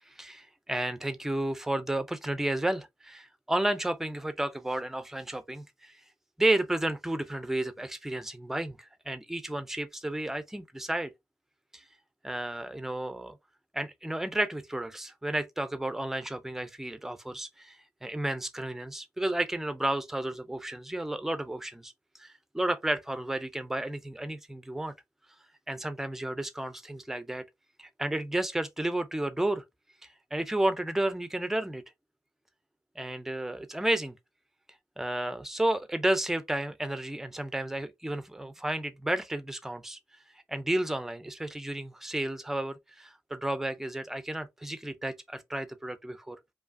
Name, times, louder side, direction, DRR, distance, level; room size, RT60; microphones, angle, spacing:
voice 1, 0.1-5.9 6.4-11.1 11.7-11.8 12.2-13.4 13.7-21.9 22.2-24.9 25.7-27.4 27.8-29.6 30.3-31.8 33.0-34.2 35.0-40.0 40.5-46.4, right 1 dB, 5° right, 0.4 m, -32 dB
4.7 x 2.6 x 2.5 m
wide cardioid pair, 165°, 6 cm